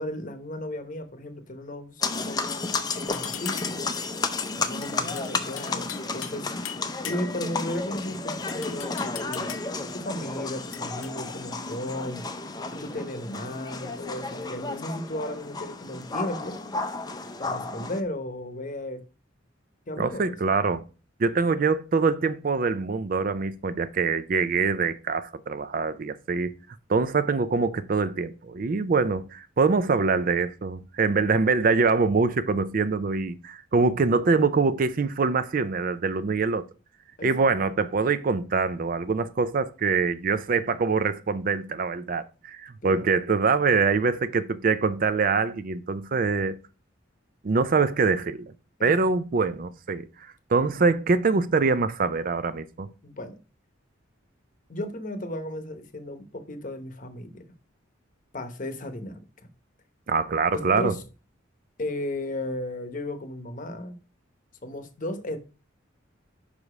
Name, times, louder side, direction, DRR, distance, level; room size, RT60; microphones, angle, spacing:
voice 1, 0.0-2.4 2.9-3.9 4.6-6.5 7.0-9.5 9.8-12.3 12.7-16.6 17.4-19.0 19.9-20.5 37.2-37.3 42.8-43.1 48.8-48.9 53.0-53.4 54.7-57.4 58.3-59.2 60.6-61.0 61.8-64.0 64.6-65.4, left 1 dB, 40° left, 0.9 m, -35 dB
sound 1, 2.0-18.0, left 3 dB, 20° left, 0.5 m, -32 dB
sound 2, 3.1-3.9 4.8-6.4 6.7-7.5 8.5-9.8 10.7-11.1, left 9 dB, 80° left, 0.7 m, -39 dB
voice 2, 20.0-20.8 21.2-26.5 26.9-36.6 37.2-46.6 47.4-48.5 48.8-52.9 60.1-60.9, right 4 dB, 45° right, 0.4 m, -24 dB
5.3 x 4.9 x 4.8 m
head